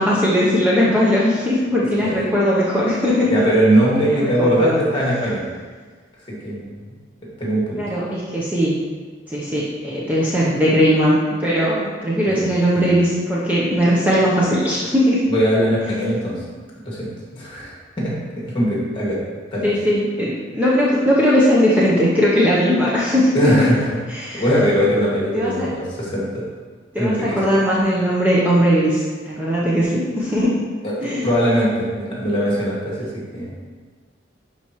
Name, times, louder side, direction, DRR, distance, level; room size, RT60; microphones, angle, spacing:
voice 1, 0.0-3.3 4.0-4.8 7.8-8.8 9.3-15.2 19.6-23.5 24.1-24.7 25.3-25.7 26.9-30.6 31.0-31.3, equal, 10° right, -7 dB, 0.8 m, -19 dB
voice 2, 3.3-5.5 6.3-6.7 7.4-7.8 12.2-12.4 12.7-12.9 15.3-16.4 16.9-19.2 19.5-19.7 23.3-23.9 24.3-26.5 27.0-27.4 30.8-33.5, equal, 30° left, -5 dB, 2.1 m, -20 dB
11.5 x 4.5 x 3.1 m, 1.5 s
head